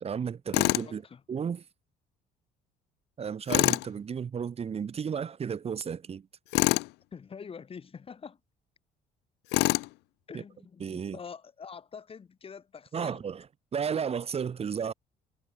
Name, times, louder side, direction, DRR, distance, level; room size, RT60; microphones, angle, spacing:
voice 1, 0.0-1.0 1.3-1.6 3.2-6.2 10.8-11.2 12.9-13.4 13.7-14.9, right 7 dB, 35° right, 1.6 m, -33 dB
Tools, 0.5-0.9 3.5-3.9 6.5-6.9 9.5-9.9, left 22 dB, 85° left, 0.5 m, -25 dB
voice 2, 0.8-1.2 7.1-8.4 10.3-13.2 13.9-14.0, left 6 dB, 35° left, 2.7 m, -45 dB
cardioid pair, 110°, 17 cm